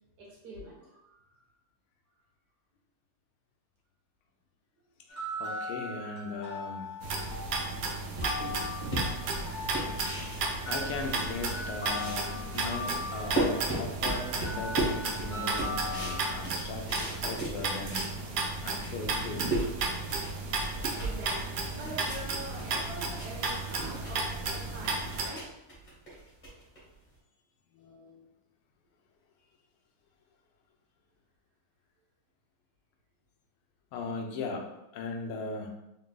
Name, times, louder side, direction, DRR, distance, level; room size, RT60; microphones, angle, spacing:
voice 1, 0.2-1.5 21.0-25.5, right 1 dB, 55° right, -4 dB, 1.5 m, -44 dB
sound 1, 5.1-16.4, left 2 dB, 45° left, 0.9 m, -40 dB
voice 2, 5.4-6.9 10.7-18.1 18.6-19.5 27.7-28.2 33.9-35.7, left 3 dB, 80° left, 2 dB, 1.5 m, -38 dB
sound 2, 7.0-25.3, right 3 dB, 85° right, 0.9 m, -34 dB
sound 3, 8.2-11.6 11.8-18.2 18.6-18.7 19.0-27.1, right 2 dB, 25° left, 1.2 m, -36 dB
3.9 x 3.8 x 2.2 m, 0.93 s
omnidirectional pair, 2.4 m